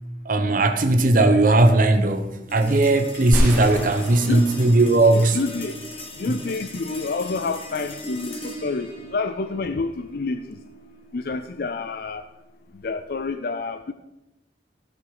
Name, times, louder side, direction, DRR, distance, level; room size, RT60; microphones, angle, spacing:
voice 1, 0.3-5.4, right 2 dB, 50° right, 7 dB, 0.9 m, -18 dB
sound 1, 2.5-13.1, equal, 30° left, 1.8 m, -39 dB
sound 2, 3.3-6.2, equal, 10° right, 4.0 m, -27 dB
voice 2, 4.2-4.7 5.1-5.8 6.2-10.6 11.1-12.3 12.7-13.9, left 3 dB, 55° left, 10 dB, 0.5 m, -28 dB
16.0 x 6.5 x 4.9 m, 0.97 s
head